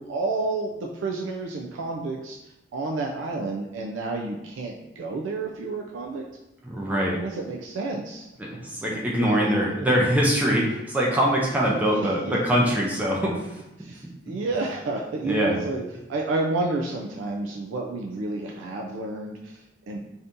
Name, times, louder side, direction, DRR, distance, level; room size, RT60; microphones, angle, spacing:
voice 1, 0.0-6.3 7.2-8.3 9.2-9.3 11.9-12.4 13.8-20.0, right 3 dB, 85° right, 0 dB, 0.3 m, -30 dB
voice 2, 6.6-7.2 8.4-13.6 14.3-14.4 15.2-15.6, equal, 10° right, -4 dB, 0.4 m, -23 dB
2.7 x 2.6 x 3.5 m, 0.92 s
head